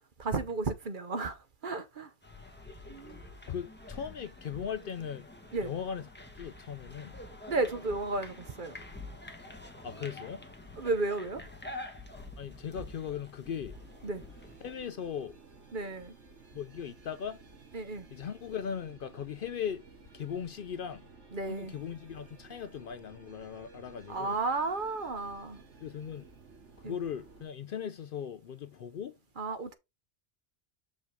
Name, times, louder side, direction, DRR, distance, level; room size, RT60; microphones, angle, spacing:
voice 1, 0.2-2.1 2.9-3.2 5.5-5.7 7.5-8.7 10.8-11.4 14.0-14.2 15.7-16.1 17.7-18.1 21.3-21.7 24.1-25.6 26.8-26.9 29.4-29.7, right 3 dB, 50° right, 1.0 m, -33 dB
sound 1, 2.2-14.8, left 2 dB, 10° left, 1.2 m, -47 dB
voice 2, 3.5-5.3 5.6-6.1 6.3-7.2 9.8-10.4 12.4-13.8 14.6-15.4 16.5-17.4 18.1-19.8 20.1-21.0 21.5-24.4 25.8-26.2 26.8-29.2, left 8 dB, 60° left, 0.6 m, -38 dB
sound 2, 13.7-27.4, right 4 dB, 80° right, 2.2 m, -55 dB
6.4 x 5.2 x 3.6 m
omnidirectional pair, 1.2 m